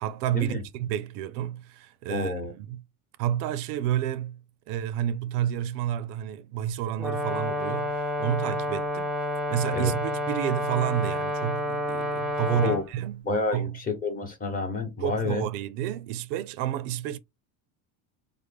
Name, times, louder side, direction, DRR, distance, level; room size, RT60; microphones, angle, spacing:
voice 1, 0.0-2.8 3.2-4.4 4.7-9.1 9.5-13.2 13.5-13.8 15.0-17.2, right 11 dB, 85° right, 0.5 m, -30 dB
voice 2, 2.1-2.5 9.7-9.9 12.5-12.8 13.2-15.4, left 3 dB, 20° left, 0.9 m, -29 dB
Brass instrument, 7.0-12.8, left 1 dB, 5° right, 0.3 m, -29 dB
3.2 x 2.1 x 3.4 m
cardioid pair, 135°, 46 cm